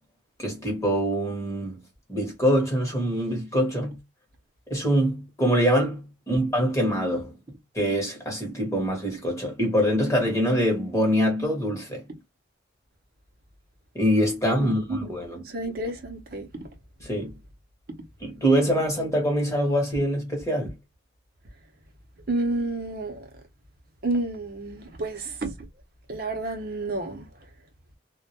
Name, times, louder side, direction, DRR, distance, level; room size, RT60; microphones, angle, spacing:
voice 1, 0.4-1.8 2.1-4.0 4.7-7.4 7.7-12.0 13.9-15.4 17.0-17.4 18.2-20.7, equal, 15° left, 0.9 m, -24 dB
voice 2, 14.6-15.1 15.4-16.7 22.3-23.3 24.0-25.7 26.1-27.3, right 2 dB, 50° right, 0.6 m, -30 dB
2.1 x 2.1 x 2.7 m
head